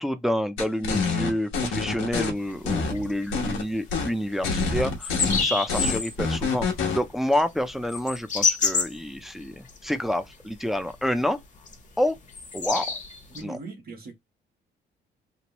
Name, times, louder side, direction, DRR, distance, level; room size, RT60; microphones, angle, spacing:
voice 1, 0.0-6.7 6.9-11.4 12.0-12.2 12.5-13.0 13.3-13.6, left 1 dB, ahead, 0.4 m, -28 dB
sound 1, 0.6-2.3 2.7-3.6 3.9-4.1 4.4-7.0, left 4 dB, 90° left, 1.0 m, -26 dB
sound 2, 2.4-3.7 4.0-4.1 4.5-4.6 4.9-6.1 6.5-9.8 10.1-10.6 10.9-11.2 11.6-13.4, left 5 dB, 40° left, 0.8 m, -28 dB
voice 2, 13.3-14.1, right 3 dB, 50° right, 1.3 m, -39 dB
3.1 x 2.0 x 2.9 m
cardioid pair, 90°, 20 cm